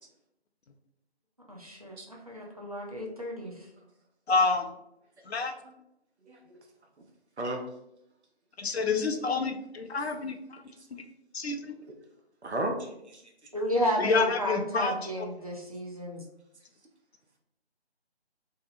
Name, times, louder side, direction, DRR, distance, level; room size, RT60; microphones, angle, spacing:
voice 1, 1.5-3.5 13.5-16.2, equal, 35° right, -2 dB, 0.4 m, -32 dB
voice 2, 4.3-4.6 5.3-5.5 8.6-10.3 11.3-11.7 14.0-14.9, left 4 dB, 70° left, 5 dB, 0.5 m, -27 dB
voice 3, 6.3-6.6 7.4-7.6 12.4-13.2, right 1 dB, 90° right, 2 dB, 0.6 m, -34 dB
2.7 x 2.0 x 2.5 m, 0.81 s
figure-of-eight pair, 160°, 33 cm